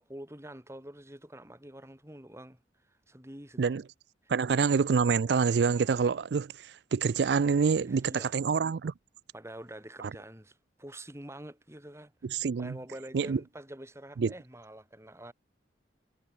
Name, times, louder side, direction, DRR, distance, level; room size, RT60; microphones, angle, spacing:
voice 1, 0.0-2.6 3.1-3.7 4.2-4.3 7.8-8.4 9.3-12.1 12.5-15.3, right 1 dB, 15° right, 3.4 m, -46 dB
voice 2, 4.3-8.9 10.0-10.1 12.2-12.8 13.1-13.4 14.2-14.3, right 5 dB, 65° right, 0.4 m, -27 dB
head